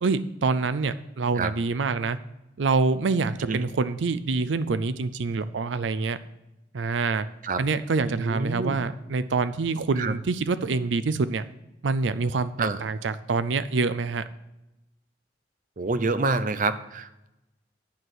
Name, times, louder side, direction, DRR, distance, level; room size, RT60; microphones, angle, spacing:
voice 1, 0.0-2.2 2.6-6.2 6.7-7.3 7.6-11.4 11.8-14.2, right 4 dB, 90° right, 13 dB, 0.5 m, -26 dB
voice 2, 8.1-8.8 10.0-10.1 12.6-12.8 15.8-17.3, right 3 dB, 45° right, 12 dB, 0.7 m, -27 dB
10.5 x 4.8 x 7.7 m, 0.93 s
head